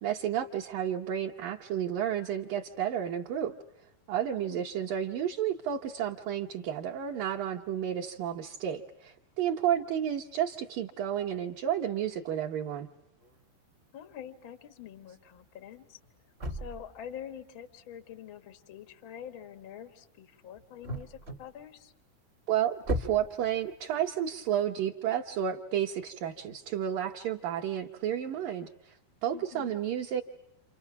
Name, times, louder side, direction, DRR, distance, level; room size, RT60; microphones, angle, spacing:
voice 1, 0.0-3.5 4.1-12.9 22.5-29.0 29.2-30.2, right 10 dB, 70° right, -1 dB, 2.3 m, -31 dB
voice 2, 4.4-4.7 13.9-16.0 16.5-21.9 29.3-29.7, left 9 dB, 80° left, 11 dB, 1.1 m, -46 dB
sound 1, 13.2-13.4 15.3-15.4 15.7-17.6 20.6-21.8 22.4-22.5 22.8-24.0, left 1 dB, 40° right, 0.9 m, -38 dB
29.0 x 28.5 x 5.9 m, 0.83 s
omnidirectional pair, 5.0 m